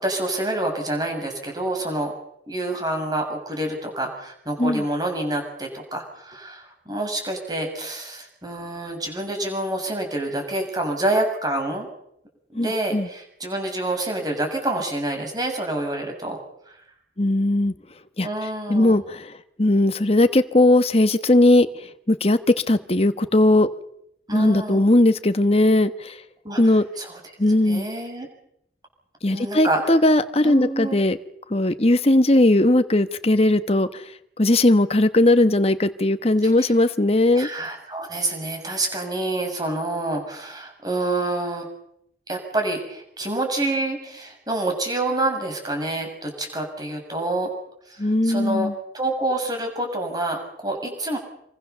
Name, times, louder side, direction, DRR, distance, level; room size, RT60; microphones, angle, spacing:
voice 1, 0.0-2.1 2.5-11.9 12.5-16.4 18.2-19.0 24.3-24.9 26.4-26.6 27.0-27.2 27.7-28.3 29.3-29.8 30.4-31.0 36.6-36.7 37.3-41.7 42.3-47.5 47.9-48.7 48.9-51.2, right 2 dB, 20° right, 3 dB, 7.0 m, -27 dB
voice 2, 12.5-13.1 17.2-17.7 18.2-18.3 18.7-19.3 19.6-21.7 22.1-23.7 24.3-26.2 26.6-26.8 27.4-27.9 29.2-31.2 31.5-34.0 34.4-37.5 48.0-48.7, left 1 dB, 35° left, 10 dB, 1.2 m, -18 dB
27.5 x 24.0 x 7.0 m, 0.75 s
head